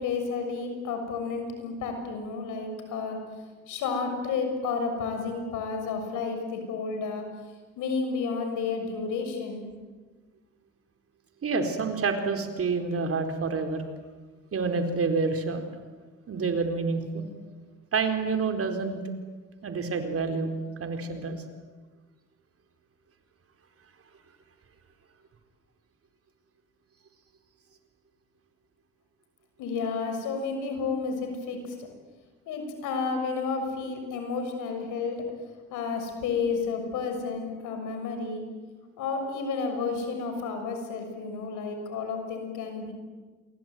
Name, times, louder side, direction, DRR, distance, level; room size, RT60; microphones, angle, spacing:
voice 1, 0.0-3.2 3.7-7.2 7.8-9.6 29.6-31.7 32.5-35.2 35.7-38.4 39.0-42.9, left 4 dB, 90° left, 5 dB, 6.7 m, -31 dB
voice 2, 11.4-13.8 14.5-15.6 16.3-17.3 17.9-19.0 19.6-21.4, right 4 dB, 50° right, 5 dB, 4.4 m, -28 dB
28.0 x 22.5 x 9.4 m, 1.3 s
cardioid pair, 90°, 30 cm